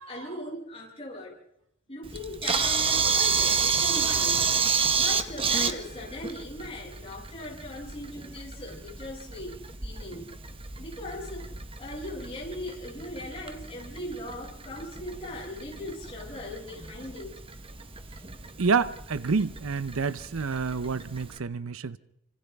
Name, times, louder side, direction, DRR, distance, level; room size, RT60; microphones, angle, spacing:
voice 1, 0.1-1.3 1.9-4.4 4.9-9.6 9.8-10.3 10.8-11.5 11.8-17.4, left 1 dB, 25° left, 7.5 m, -39 dB
Camera, 2.0-21.4, right 5 dB, 25° right, 1.1 m, -31 dB
voice 2, 18.6-22.0, right 5 dB, 70° right, 0.7 m, -28 dB
29.5 x 25.5 x 3.5 m
head